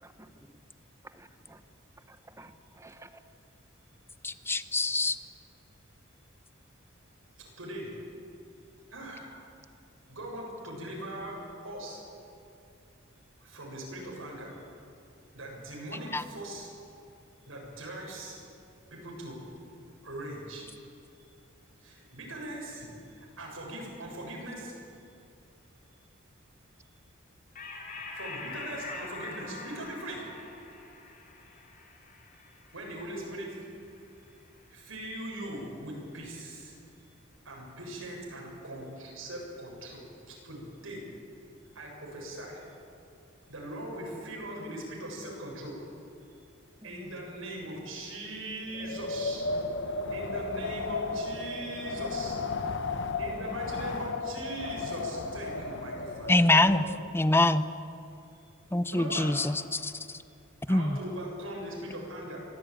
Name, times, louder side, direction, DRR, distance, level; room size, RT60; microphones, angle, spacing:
voice 1, 1.1-1.6 2.1-3.2 46.8-47.2, right 1 dB, 15° right, 10 dB, 1.0 m, -52 dB
voice 2, 4.2-5.2 16.1-16.2 56.3-56.9 57.1-57.7 58.7-60.2 60.7-61.0, left 2 dB, 10° left, 12 dB, 0.7 m, -25 dB
voice 3, 7.6-7.9 8.9-9.3 10.1-11.4 11.6-12.0 13.4-14.6 15.3-16.7 17.4-18.5 18.9-19.4 20.0-20.7 21.1-21.2 21.8-25.1 25.9-26.0 26.8-26.9 28.1-30.6 31.4-31.5 32.3-32.4 32.7-33.5 34.2-34.3 34.7-37.0 37.4-41.0 41.6-42.7 43.5-45.8 46.2-46.4 46.8-49.4 50.1-52.4 53.2-55.9 56.2-56.4 58.3-58.4 58.9-59.4 60.1-60.2 60.7-62.5, right 1 dB, 85° right, -2 dB, 7.3 m, -40 dB
sound 1, 27.6-34.4, left 3 dB, 45° left, 4.0 m, -44 dB
Wind, 48.7-57.1, left 3 dB, 65° left, 1.1 m, -34 dB
24.0 x 16.5 x 9.0 m, 2.6 s
head